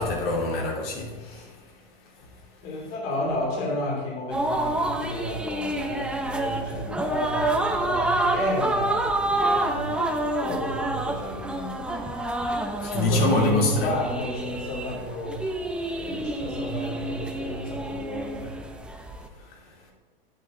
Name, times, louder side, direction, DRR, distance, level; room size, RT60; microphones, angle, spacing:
voice 1, 0.0-1.5 12.8-13.9 19.5-19.6, left 1 dB, 70° left, 3.1 m, -25 dB
voice 2, 2.6-10.0 10.4-12.1 13.1-15.5 15.9-18.6, left 1 dB, 45° left, 2.8 m, -31 dB
sound 1, 4.3-19.3, right 2 dB, 5° right, 0.6 m, -28 dB
9.2 x 8.8 x 3.7 m
hypercardioid pair, 135°, 30 cm